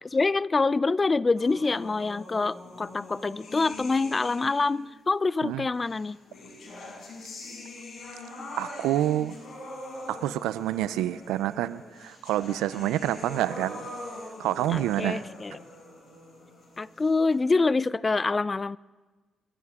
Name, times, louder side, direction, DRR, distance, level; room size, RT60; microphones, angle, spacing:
voice 1, 0.0-6.2 14.7-15.6 16.8-18.8, left 3 dB, 35° left, 0.4 m, -26 dB
sound 1, 1.4-4.8 5.8-17.4, left 2 dB, 60° left, 6.8 m, -43 dB
voice 2, 8.6-9.4 10.1-13.9 14.4-15.2, right 13 dB, 90° right, 0.5 m, -28 dB
26.5 x 14.0 x 3.7 m
supercardioid pair, 55°, 0 cm